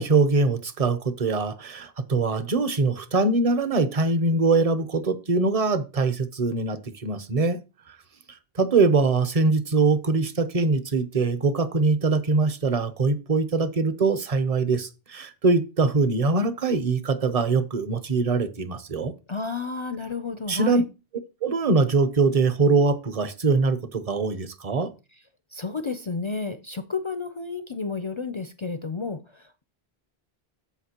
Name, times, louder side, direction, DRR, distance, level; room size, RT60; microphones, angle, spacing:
voice 1, 0.0-7.6 7.9-8.0 8.3-19.1 20.5-20.8 21.4-24.9, right 3 dB, 40° right, 0.7 m, -23 dB
voice 2, 19.3-20.8 25.5-29.6, left 4 dB, 45° left, 0.4 m, -31 dB
14.0 x 4.9 x 2.9 m
omnidirectional pair, 1.0 m